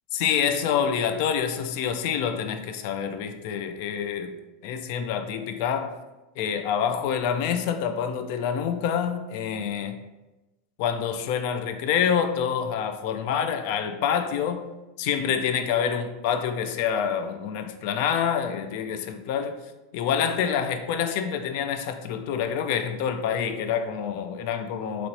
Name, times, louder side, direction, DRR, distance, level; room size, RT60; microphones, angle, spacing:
voice 1, 0.1-4.3 4.6-5.9 6.4-10.0 10.8-14.7 15.0-19.6 19.9-25.1, left 8 dB, 60° left, 8 dB, 0.4 m, -27 dB
3.0 x 2.9 x 4.1 m, 1.1 s
supercardioid pair, 145°, 0 cm